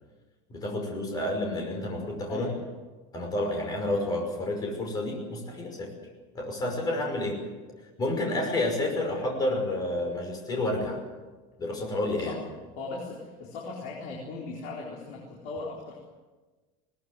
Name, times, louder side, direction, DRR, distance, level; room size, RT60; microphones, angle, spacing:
voice 1, 0.5-2.5 3.1-5.9 6.3-7.4 8.0-11.0 11.6-12.4, left 1 dB, 20° left, 2 dB, 5.7 m, -30 dB
voice 2, 12.8-16.0, left 3 dB, 50° left, -2 dB, 4.2 m, -38 dB
21.0 x 19.5 x 7.9 m, 1.3 s
cardioid pair, 170°, 17 cm